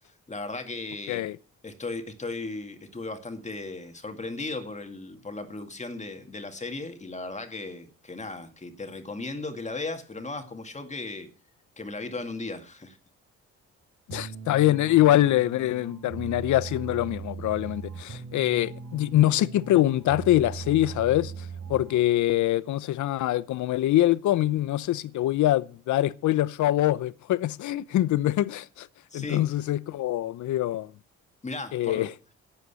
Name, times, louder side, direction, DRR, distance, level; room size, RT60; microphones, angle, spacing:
voice 1, 0.3-1.2 1.6-11.3 11.8-13.0 29.1-29.5 31.4-32.1, left 3 dB, 25° left, 2.1 m, -36 dB
voice 2, 14.1-21.3 21.7-28.9 29.1-30.9 31.7-32.1, left 14 dB, 75° left, 0.7 m, -24 dB
sound 1, 14.1-22.2, right 6 dB, 55° right, 4.6 m, -39 dB
11.5 x 8.1 x 8.3 m
cardioid pair, 90°, 30 cm